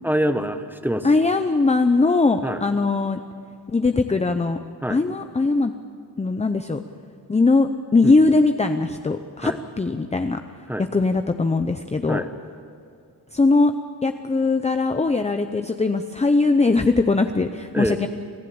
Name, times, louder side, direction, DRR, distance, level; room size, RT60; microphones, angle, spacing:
voice 1, 0.0-1.1 2.4-2.6 4.8-5.0 8.0-8.1 9.4-9.6 10.7-10.8 12.1-12.3 17.7-18.0, equal, 5° right, 8 dB, 1.2 m, -25 dB
voice 2, 1.0-3.2 3.7-4.6 4.9-5.7 6.2-6.8 7.3-10.4 10.9-12.2 13.3-13.7 14.0-18.1, left 3 dB, 15° left, 7 dB, 0.7 m, -20 dB
26.5 x 15.5 x 8.7 m, 2.4 s
wide cardioid pair, 125°, 42 cm